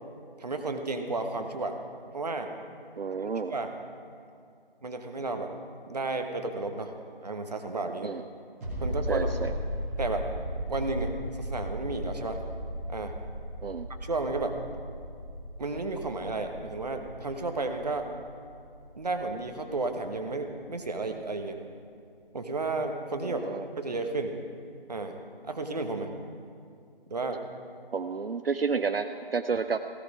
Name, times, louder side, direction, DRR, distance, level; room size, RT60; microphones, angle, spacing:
voice 1, 0.4-1.8 2.1-2.5 3.2-3.7 4.8-5.5 5.9-6.9 7.2-8.1 8.8-9.3 10.0-10.2 10.7-11.1 11.4-12.4 12.9-13.1 14.0-14.5 15.6-18.1 19.0-21.6 22.3-23.5 23.8-24.3 24.9-25.1 25.4-26.1 27.1-27.4, right 3 dB, 45° right, 5 dB, 1.2 m, -32 dB
voice 2, 3.0-3.5 8.0-8.2 9.1-9.5 13.6-13.9 23.2-23.7 27.9-29.8, right 5 dB, 75° right, 9 dB, 0.6 m, -30 dB
sound 1, 8.6-19.9 20.2-20.3, equal, 15° right, 2.0 m, -36 dB
16.0 x 12.0 x 4.9 m, 2.3 s
figure-of-eight pair, 160°, 29 cm